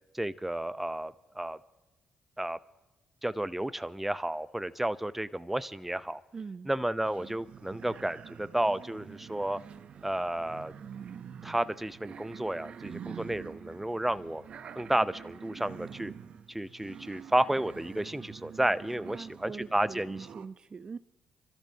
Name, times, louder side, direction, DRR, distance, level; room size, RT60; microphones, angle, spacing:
voice 1, 0.1-1.6 2.4-2.6 3.2-6.2 6.7-9.6 10.0-10.7 11.4-14.4 14.7-16.1 16.5-20.3, right 1 dB, 10° right, 0.8 m, -32 dB
voice 2, 6.3-6.7 19.1-21.0, right 5 dB, 40° right, 0.5 m, -43 dB
sound 1, 7.0-20.5, right 7 dB, 60° right, 0.9 m, -46 dB
27.0 x 13.5 x 2.9 m
hypercardioid pair, 50°, 2 cm